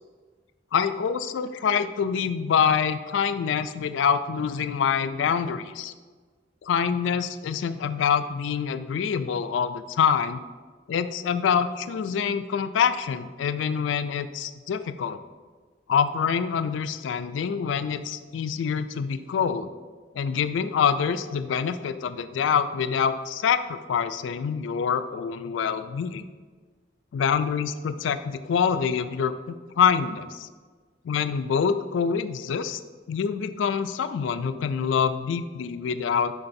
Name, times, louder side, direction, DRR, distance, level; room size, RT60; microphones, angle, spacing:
voice 1, 0.7-5.9 6.6-10.4 10.9-15.2 15.9-19.7 20.2-26.2 27.1-30.5 31.0-32.8 33.1-36.3, left 7 dB, 80° left, 11 dB, 0.3 m, -26 dB
9.7 x 3.8 x 2.6 m, 1.4 s
head